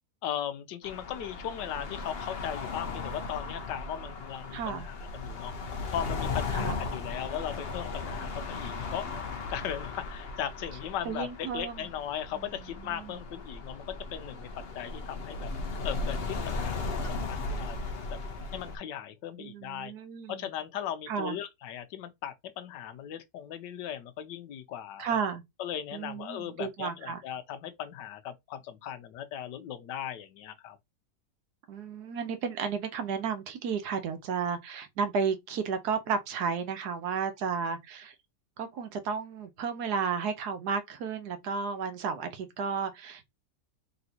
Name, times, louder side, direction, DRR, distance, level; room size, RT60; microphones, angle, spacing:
voice 1, 0.2-9.2 9.5-13.8 14.1-14.5 14.7-17.8 18.1-18.2 18.5-19.9 20.3-25.0 25.6-30.8, left 10 dB, 80° left, 1.3 m, -38 dB
sound 1, 0.8-18.8, left 3 dB, 55° left, 0.7 m, -36 dB
voice 2, 4.5-4.9 6.5-6.8 11.1-11.8 12.4-13.2 19.4-20.5 21.1-21.4 25.0-25.4 25.9-27.2 31.7-38.1 38.6-43.3, right 6 dB, 70° right, 1.2 m, -33 dB
4.0 x 3.4 x 2.8 m
omnidirectional pair, 1.8 m